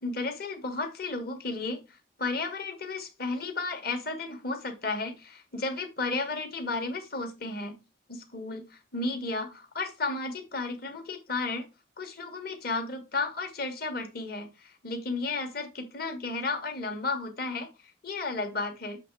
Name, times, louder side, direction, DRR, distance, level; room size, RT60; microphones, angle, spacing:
voice 1, 0.0-7.8 8.1-8.6 8.9-11.7 12.0-19.0, left 3 dB, 50° left, 5 dB, 1.5 m, -33 dB
7.6 x 3.3 x 4.7 m, 0.26 s
head